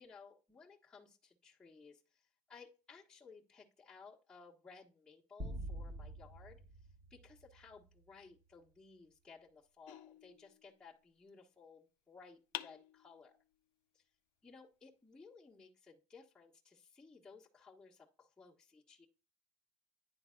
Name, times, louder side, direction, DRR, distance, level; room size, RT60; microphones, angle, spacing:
voice 1, 0.0-6.6 7.1-13.4 13.9-14.1 14.4-19.1, left 4 dB, 5° left, -7 dB, 1.5 m, -59 dB
sound 1, 5.4-8.0, right 1 dB, 30° right, 1.7 m, -47 dB
sound 2, 9.9-11.0 12.5-13.5, left 17 dB, 85° left, 0.5 m, -49 dB
10.5 x 3.9 x 2.5 m, 0.33 s
cardioid pair, 125°, 13 cm